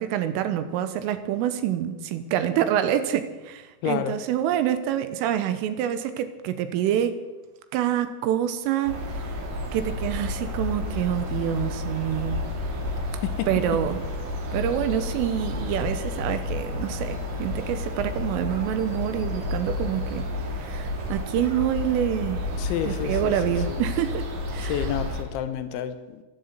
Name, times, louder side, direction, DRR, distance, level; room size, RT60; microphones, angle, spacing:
voice 1, 0.0-7.2 7.7-9.3 9.7-12.4 13.5-14.0 14.5-22.5 22.8-24.9, right 10 dB, 80° right, 10 dB, 3.4 m, -27 dB
voice 2, 3.8-4.2 13.2-13.5 22.6-23.8 24.6-26.2, left 10 dB, 80° left, 10 dB, 2.9 m, -30 dB
sound 1, 8.9-25.2, left 2 dB, 55° right, 4.1 m, -31 dB
14.5 x 12.0 x 8.1 m, 1.2 s
omnidirectional pair, 5.9 m